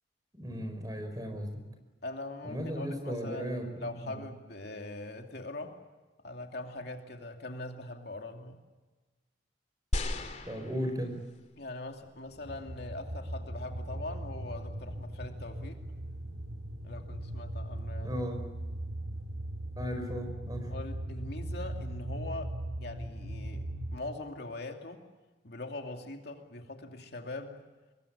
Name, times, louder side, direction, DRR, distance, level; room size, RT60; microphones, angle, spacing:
voice 1, 0.3-1.6 2.4-4.2 10.4-11.2 18.0-18.5 19.8-20.7, equal, 20° right, 7 dB, 5.0 m, -36 dB
voice 2, 2.0-5.8 6.2-8.6 11.6-15.8 16.8-18.2 20.6-25.1 25.4-27.6, left 2 dB, 60° left, 3 dB, 2.6 m, -42 dB
sound 1, 9.9-11.4 12.2-12.3, left 1 dB, 40° left, 2.6 m, -35 dB
sound 2, 12.3-24.0, right 1 dB, 80° right, 2.7 m, -39 dB
26.5 x 22.0 x 8.6 m, 1.2 s
head